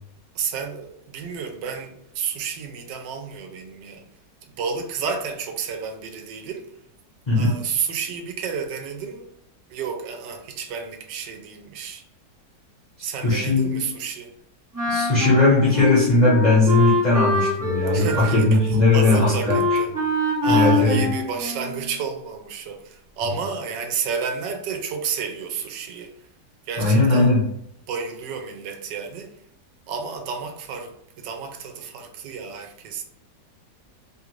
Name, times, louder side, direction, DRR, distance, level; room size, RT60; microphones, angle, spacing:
voice 1, 0.3-4.0 4.4-6.7 7.3-9.3 9.7-12.0 13.0-14.3 17.9-19.9 20.4-26.1 26.7-27.3 27.9-29.3 29.9-33.0, right 6 dB, 80° right, 1.2 m, -31 dB
voice 2, 13.0-13.8 14.9-19.6 20.5-21.1 26.8-27.4, left 2 dB, 35° left, 0.7 m, -18 dB
Wind instrument woodwind instrument, 14.7-22.0, left 2 dB, 30° right, 0.3 m, -24 dB
3.1 x 2.4 x 3.0 m
omnidirectional pair, 1.9 m